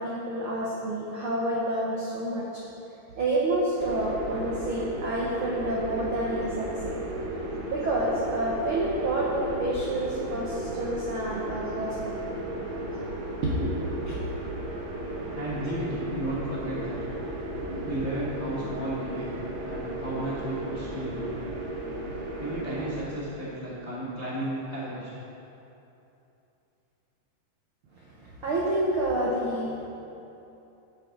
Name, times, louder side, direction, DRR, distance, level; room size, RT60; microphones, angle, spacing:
voice 1, 0.0-2.6 3.2-7.0 7.7-12.1 13.4-13.7 14.1-14.2 17.6-17.8 27.9-29.9, right 1 dB, 85° right, -4 dB, 1.1 m, -29 dB
sound 1, 3.8-23.0, right 1 dB, 65° right, 1.2 m, -35 dB
voice 2, 15.3-17.0 17.8-19.4 19.6-21.4 22.4-25.1, right 1 dB, 50° left, -9 dB, 0.7 m, -33 dB
10.5 x 8.9 x 3.9 m, 2.8 s
omnidirectional pair, 3.9 m